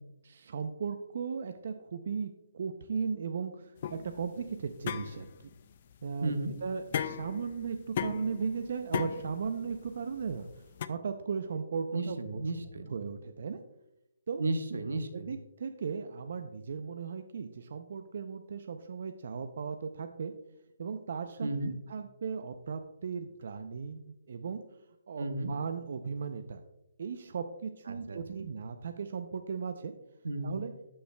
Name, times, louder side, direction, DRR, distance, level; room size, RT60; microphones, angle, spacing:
voice 1, 0.2-5.3 6.0-6.3 6.6-12.4 12.9-13.6 14.3-14.4 15.1-20.3 20.8-24.6 25.1-26.6 27.0-29.9 30.4-30.7, right 5 dB, 55° right, 7 dB, 0.5 m, -37 dB
sound 1, 3.8-10.9, left 8 dB, 40° left, 0.4 m, -38 dB
voice 2, 6.2-6.5 11.9-12.9 14.4-15.3 21.4-21.7 25.2-25.5 27.9-28.4 30.2-30.6, right 2 dB, 85° right, 7 dB, 1.0 m, -34 dB
13.0 x 5.5 x 2.2 m, 0.88 s
hypercardioid pair, 165°, 0 cm